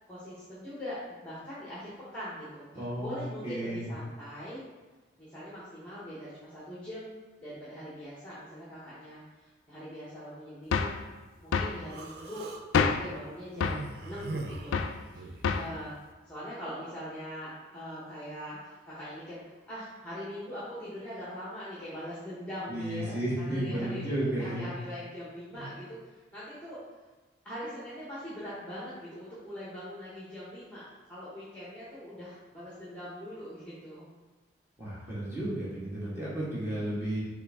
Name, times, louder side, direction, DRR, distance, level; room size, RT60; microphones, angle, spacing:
voice 1, 0.1-4.6 5.2-10.9 11.4-12.5 13.0-14.8 15.1-16.0 16.3-26.0 26.3-26.8 27.4-34.0, equal, 5° left, -9 dB, 0.9 m, -42 dB
voice 2, 2.7-3.9 22.7-24.7 25.5-25.6 34.8-37.2, right 1 dB, 15° right, -9 dB, 1.4 m, -33 dB
sound 1, 10.7-11.0 11.5-11.8 12.7-13.1 13.6-13.9 14.7-15.0 15.4-15.8, left 5 dB, 85° left, 0.3 m, -27 dB
Human voice, 11.9-12.6 13.5-15.5, right 2 dB, 55° right, 0.4 m, -40 dB
4.5 x 3.4 x 3.5 m, 1.3 s
head